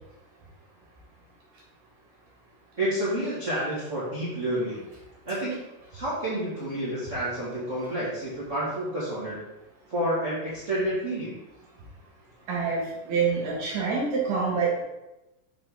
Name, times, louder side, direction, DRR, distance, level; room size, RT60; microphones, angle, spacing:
voice 1, 2.8-4.8 5.2-5.6 5.9-9.4 9.9-11.3, right 1 dB, 35° right, -9 dB, 1.3 m, -29 dB
voice 2, 12.5-14.8, right 5 dB, 65° right, -3 dB, 3.0 m, -26 dB
6.9 x 5.8 x 3.5 m, 0.97 s
omnidirectional pair, 4.1 m